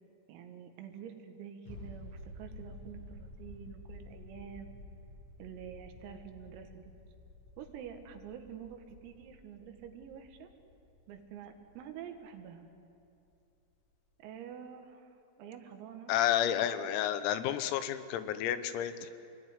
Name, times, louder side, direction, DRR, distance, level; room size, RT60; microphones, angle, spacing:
voice 1, 0.3-4.7 5.4-6.9 7.6-10.5 11.1-12.7 14.2-15.1 15.4-16.1, right 8 dB, 85° right, 5 dB, 4.5 m, -47 dB
sound 1, 1.7-13.0 13.3-13.4, left 1 dB, 65° left, 10.5 m, -51 dB
voice 2, 16.1-19.1, left 11 dB, 90° left, 11 dB, 3.9 m, -31 dB
28.5 x 20.5 x 9.8 m, 2.6 s
omnidirectional pair, 6.0 m